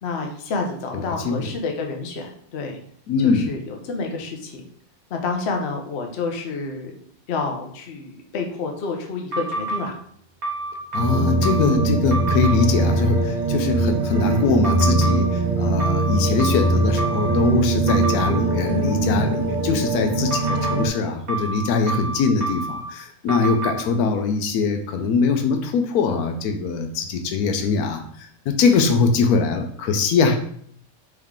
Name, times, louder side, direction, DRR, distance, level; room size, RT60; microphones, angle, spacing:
voice 1, 0.0-2.8 3.2-4.6 5.1-7.0 7.3-9.9, left 4 dB, 55° left, 3 dB, 0.9 m, -29 dB
voice 2, 0.9-1.5 3.1-3.5 10.9-30.5, left 4 dB, 90° left, 6 dB, 1.1 m, -22 dB
sound 1, 9.3-9.8 10.4-11.8 12.1-12.6 14.6-15.2 15.8-17.4 17.9-18.3 20.3-20.8 21.3-22.8 23.3-23.7, right 3 dB, 75° right, 1.5 m, -28 dB
sound 2, 11.0-20.9, right 2 dB, 45° right, 0.7 m, -22 dB
3.6 x 3.2 x 3.5 m, 0.63 s
omnidirectional pair, 1.5 m